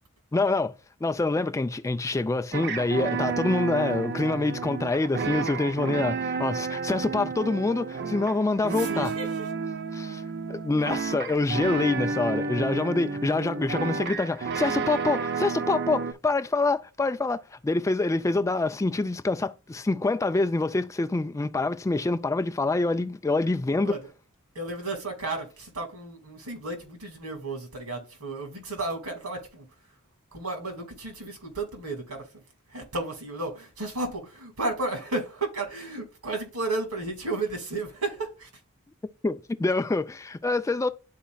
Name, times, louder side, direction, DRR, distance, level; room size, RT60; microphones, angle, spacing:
voice 1, 0.3-0.7 1.0-9.1 9.9-10.2 10.5-24.0 39.2-40.9, left 3 dB, 15° left, 0.3 m, -26 dB
sound 1, 2.5-16.1, right 5 dB, 50° right, 0.6 m, -31 dB
voice 2, 8.8-9.5 23.8-24.0 24.6-29.7 30.3-32.3 32.7-38.5, right 2 dB, 80° right, 2.1 m, -33 dB
11.5 x 4.1 x 2.3 m
head